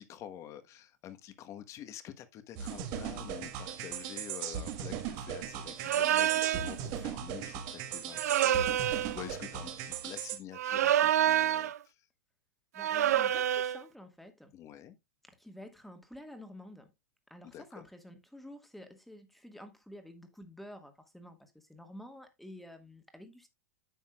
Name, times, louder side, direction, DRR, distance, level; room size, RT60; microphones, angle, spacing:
voice 1, 0.0-11.9 14.5-15.0 17.4-17.9, left 10 dB, 35° left, 1.2 m, -47 dB
sound 1, 2.6-10.4, right 9 dB, 45° right, 1.5 m, -38 dB
sound 2, 5.8-6.7 8.1-9.2 10.5-11.8 12.8-13.8, right 11 dB, 70° right, 0.4 m, -27 dB
voice 2, 12.7-14.5 15.3-16.9 17.3-23.5, left 1 dB, ahead, 1.7 m, -50 dB
10.0 x 7.1 x 2.4 m
hypercardioid pair, 105°, 9 cm